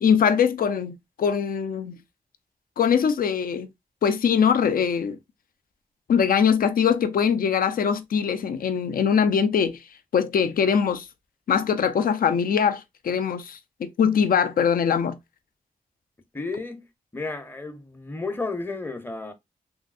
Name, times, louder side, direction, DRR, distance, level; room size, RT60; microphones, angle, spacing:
voice 1, 0.0-2.0 2.8-3.7 4.0-5.2 6.1-9.8 10.1-11.1 11.5-15.2, left 7 dB, 80° left, 0.4 m, -22 dB
voice 2, 16.3-16.8 17.1-19.3, left 3 dB, 15° left, 0.6 m, -32 dB
3.0 x 2.6 x 2.4 m
wide cardioid pair, 100°, 15 cm